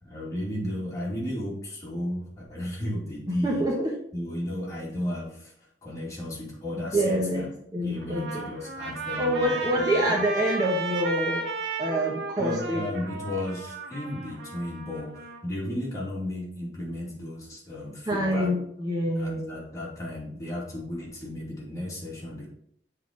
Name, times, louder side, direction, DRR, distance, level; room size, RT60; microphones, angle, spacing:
voice 1, 0.0-3.6 4.1-5.5 5.8-7.5 7.8-10.2 12.4-18.5 19.1-22.5, left 1 dB, 20° left, -5 dB, 2.5 m, -34 dB
voice 2, 3.4-3.9 6.9-8.4 9.2-11.5 11.8-12.9 18.1-19.5, right 1 dB, 25° right, -2 dB, 1.1 m, -26 dB
Trumpet, 7.9-15.4, right 3 dB, 85° right, 1.7 m, -34 dB
7.3 x 3.8 x 5.1 m, 0.69 s
head